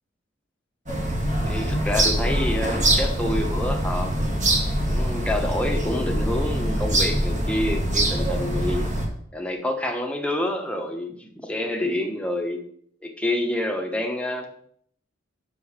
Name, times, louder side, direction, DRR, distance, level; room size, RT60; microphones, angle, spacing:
sound 1, 0.9-9.1, right 1 dB, 40° right, 1.9 m, -24 dB
voice 1, 1.4-4.1 4.9-8.9 9.3-12.6 13.0-14.5, left 1 dB, 5° left, 2 dB, 1.1 m, -28 dB
6.2 x 5.4 x 6.5 m, 0.63 s
head